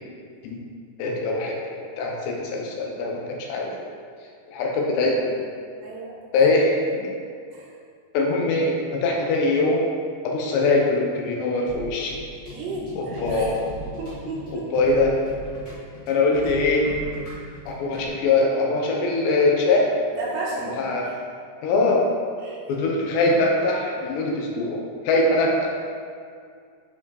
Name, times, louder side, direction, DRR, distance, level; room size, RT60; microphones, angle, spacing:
voice 1, 1.0-1.6 2.0-3.7 4.5-5.4 6.3-6.8 8.1-9.9 10.2-12.2 13.0-13.6 14.7-15.1 16.1-16.9 17.7-19.9 20.8-21.1 21.6-22.1 22.7-24.8 25.0-25.8, left 3 dB, 75° left, -1 dB, 3.1 m, -22 dB
voice 2, 5.8-6.2 7.5-7.8 12.5-13.6 14.0-14.7 20.2-21.2 22.4-22.6, right 2 dB, 75° right, -5 dB, 3.3 m, -33 dB
sound 1, 11.7-18.1, equal, 30° left, 1.5 m, -38 dB
11.0 x 4.9 x 4.2 m, 2.2 s
omnidirectional pair, 5.1 m